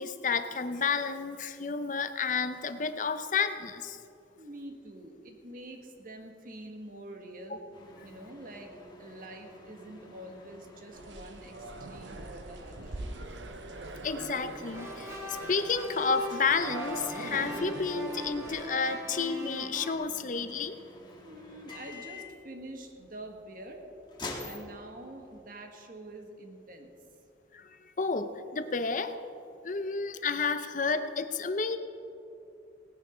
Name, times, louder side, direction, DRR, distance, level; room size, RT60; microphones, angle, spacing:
voice 1, 0.0-4.0 7.5-7.6 14.0-20.8 27.5-29.2 29.6-31.8, left 5 dB, 45° left, 10 dB, 0.7 m, -31 dB
voice 2, 4.4-7.7 8.0-8.7 9.0-13.0 21.1-23.8 24.4-26.9, right 1 dB, 50° right, 3 dB, 1.6 m, -46 dB
sound 1, 7.7-25.5, left 2 dB, 25° left, 1.7 m, -49 dB
sound 2, 10.9-18.7, right 2 dB, 80° right, 0.8 m, -42 dB
sound 3, 14.6-19.9, left 1 dB, 15° right, 1.9 m, -40 dB
18.0 x 10.5 x 5.1 m, 2.7 s
head